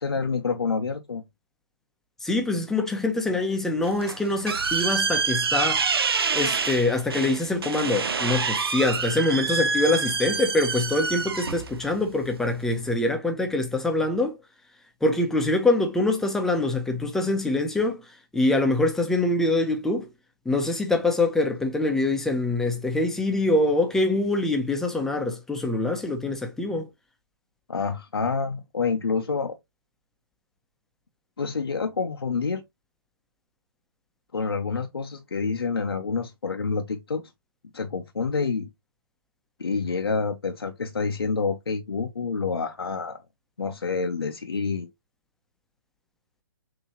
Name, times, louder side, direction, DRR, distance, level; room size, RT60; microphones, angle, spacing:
voice 1, 0.0-1.2 27.7-29.5 31.4-32.6 34.3-37.2 37.7-38.7 39.6-43.2 43.6-44.9, left 5 dB, 85° left, 0.8 m, -28 dB
voice 2, 2.2-6.0 6.3-14.4 15.0-18.0 18.3-20.1 20.4-26.9, left 2 dB, 5° left, 0.7 m, -24 dB
sound 1, 3.8-12.9, right 5 dB, 75° right, 0.7 m, -27 dB
5.9 x 2.9 x 2.9 m
hypercardioid pair, 140°, 13 cm